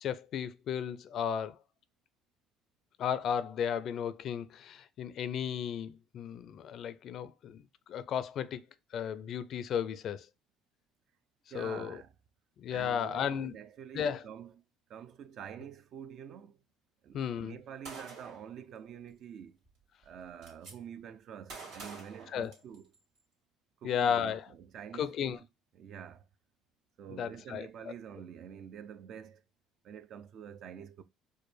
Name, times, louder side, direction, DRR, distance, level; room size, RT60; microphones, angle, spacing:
voice 1, 0.0-1.6 3.0-7.6 7.9-8.6 8.9-10.3 11.5-12.0 12.6-13.5 13.9-14.2 17.1-17.5 22.3-22.5 23.8-24.5 25.0-25.4 27.2-27.7, left 8 dB, 55° left, 0.4 m, -34 dB
voice 2, 11.5-12.1 12.7-14.5 14.9-16.6 17.0-19.6 20.0-22.9 23.8-25.5 25.7-26.3 27.0-29.4 29.8-31.0, right 8 dB, 55° right, 0.4 m, -47 dB
Gunshot gunfire, 17.8-18.5 19.6-19.7 20.0-20.7 21.5-23.0, right 4 dB, 80° right, 1.6 m, -47 dB
4.6 x 2.1 x 3.1 m
supercardioid pair, 85°, 0 cm